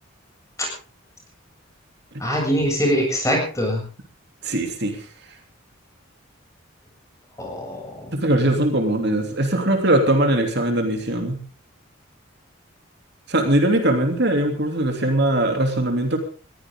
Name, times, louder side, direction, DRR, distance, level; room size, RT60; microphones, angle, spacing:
voice 1, 2.2-3.8 7.4-8.2, equal, 15° left, 0 dB, 7.5 m, -23 dB
voice 2, 4.4-5.0 8.2-11.4 13.3-16.2, right 1 dB, 55° right, 4 dB, 3.1 m, -20 dB
21.5 x 15.5 x 3.8 m, 0.38 s
head